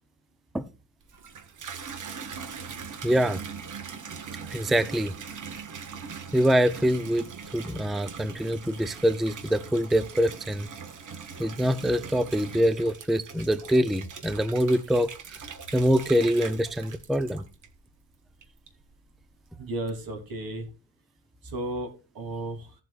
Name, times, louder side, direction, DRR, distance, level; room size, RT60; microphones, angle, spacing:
Water tap faucet / Bathtub (filling or washing), 1.0-17.9 18.4-19.0, right 6 dB, 60° right, 1.5 m, -41 dB
voice 1, 3.0-3.4 4.5-5.1 6.3-7.3 7.5-10.7 11.4-15.1 15.7-17.4, equal, ahead, 0.4 m, -24 dB
voice 2, 19.6-20.7 21.4-22.7, right 1 dB, 80° right, 3.0 m, -34 dB
16.0 x 7.8 x 2.4 m
wide cardioid pair, 170°, 35 cm